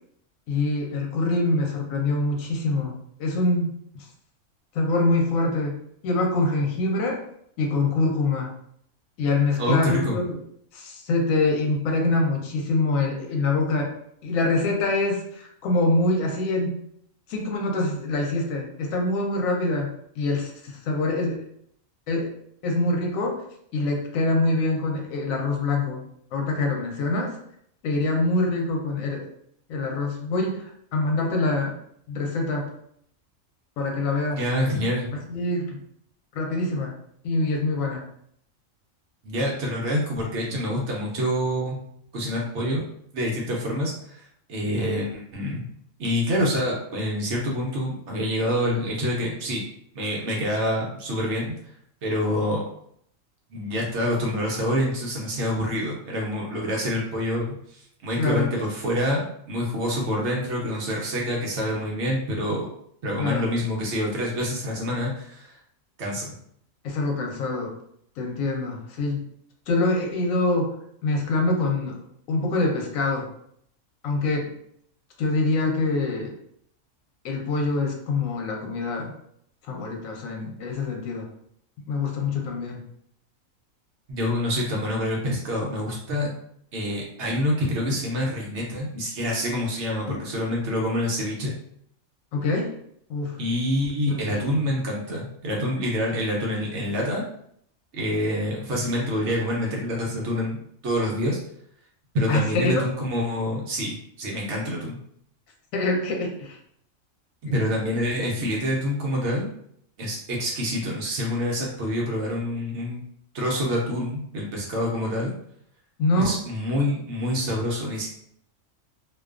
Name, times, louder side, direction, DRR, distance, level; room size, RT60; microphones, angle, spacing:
voice 1, 0.5-4.1 4.7-7.2 7.6-8.5 9.2-10.4 10.7-13.9 14.2-16.8 17.3-21.4 22.1-22.3 22.6-23.4 23.7-27.4 27.8-29.3 29.7-30.6 30.9-31.8 32.1-32.7 33.8-34.4 34.8-34.9 35.3-35.8 36.3-36.9 37.2-38.0 58.2-58.5 63.2-63.4 66.8-67.8 68.2-69.3 69.7-70.7 71.0-72.0 72.3-73.3 74.0-74.5 75.2-76.3 77.2-79.1 79.7-81.3 81.9-82.8 90.1-90.2 92.3-92.7 93.1-93.4 94.1-94.6 102.3-102.7 105.7-106.6 116.0-116.4, left 2 dB, 85° left, 1 dB, 1.0 m, -25 dB
voice 2, 9.6-10.2 34.4-35.1 39.2-41.8 42.1-42.8 43.1-45.7 46.0-49.6 49.9-51.5 52.0-52.6 53.5-62.7 63.0-65.6 66.0-66.3 84.1-86.3 86.7-91.5 93.4-97.2 97.9-100.6 100.8-101.4 102.1-105.0 107.5-109.5 110.0-113.0 113.3-115.3 116.1-118.1, equal, 65° right, -2 dB, 0.8 m, -26 dB
2.4 x 2.2 x 2.3 m, 0.69 s
omnidirectional pair, 1.4 m